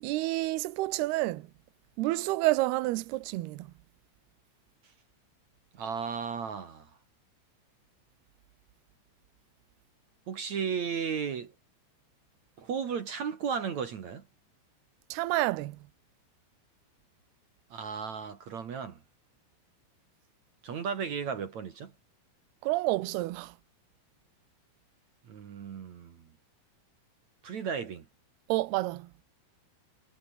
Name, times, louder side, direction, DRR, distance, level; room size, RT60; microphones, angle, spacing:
voice 1, 0.0-1.5 2.0-3.7 15.1-15.8 22.6-23.5 28.5-29.1, right 19 dB, 80° right, 2.4 m, -29 dB
voice 2, 5.7-6.9 10.3-11.5 12.6-14.2 17.7-19.0 20.6-21.9 25.3-26.3 27.4-28.1, right 6 dB, 55° right, 2.2 m, -35 dB
omnidirectional pair, 5.7 m